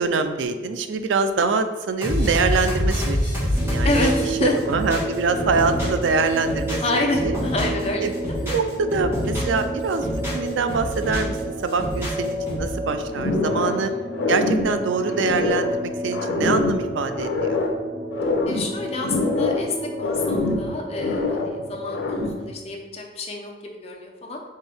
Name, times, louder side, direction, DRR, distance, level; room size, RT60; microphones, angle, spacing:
voice 1, 0.0-3.2 3.6-4.1 4.4-7.4 8.0-8.1 8.4-13.9 14.3-17.6 21.4-21.8, right 4 dB, 90° right, 9 dB, 0.4 m, -24 dB
sound 1, 2.0-6.1 6.3-7.8 8.1-9.6 9.9-11.4 11.7-12.7, equal, 15° right, 1.5 m, -26 dB
sound 2, 3.5-22.4, right 1 dB, 30° right, 1.5 m, -31 dB
voice 2, 3.8-4.6 6.8-8.4 13.7-14.1 18.5-24.4, left 2 dB, 35° left, 1 dB, 0.6 m, -28 dB
sound 3, 13.1-13.9 14.1-15.8 16.1-17.8 18.1-19.7 20.0-21.5 21.9-22.5, left 3 dB, 80° left, 0.6 m, -25 dB
4.4 x 3.4 x 3.4 m, 1.3 s
head